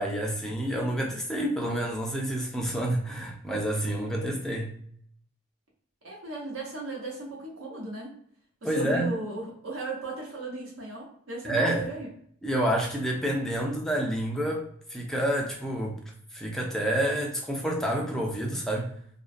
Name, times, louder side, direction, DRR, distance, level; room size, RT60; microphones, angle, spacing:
voice 1, 0.0-4.7 8.6-9.1 11.4-11.9 12.4-16.0 16.3-18.9, right 1 dB, ahead, 0 dB, 0.4 m, -28 dB
voice 2, 6.0-8.2 8.6-12.1, right 2 dB, 70° right, -3 dB, 1.0 m, -36 dB
2.3 x 2.1 x 2.4 m, 0.64 s
head